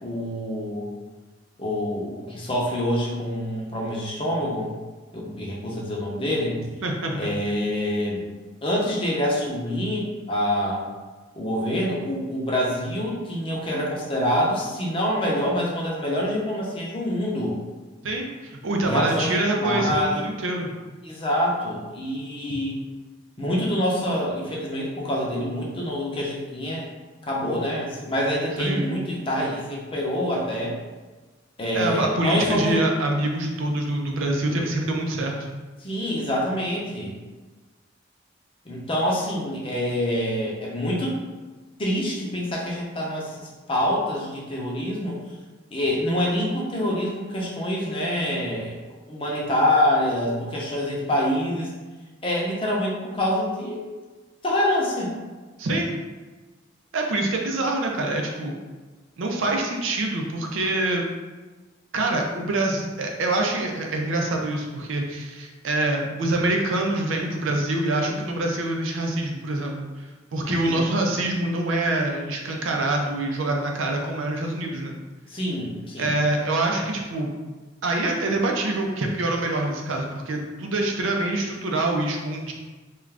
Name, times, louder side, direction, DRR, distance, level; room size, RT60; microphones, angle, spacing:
voice 1, 0.0-0.9 1.6-4.7 5.1-6.6 7.1-8.3 8.6-10.8 11.4-17.6 18.8-20.1 21.0-22.8 23.4-26.8 27.3-30.8 31.6-32.8 35.8-37.2 38.7-41.2 41.8-45.2 45.7-48.8 49.1-51.7 52.2-53.8 54.4-55.1 70.4-70.9 75.3-76.1, left 1 dB, 30° left, -3 dB, 0.6 m, -26 dB
voice 2, 6.8-7.1 18.0-20.7 28.6-28.8 31.7-35.5 55.6-55.9 56.9-58.6 59.2-61.0 61.9-70.0 70.3-75.0 76.0-77.3 77.8-82.5, right 2 dB, 90° right, 1 dB, 0.5 m, -25 dB
2.4 x 2.3 x 3.2 m, 1.3 s
head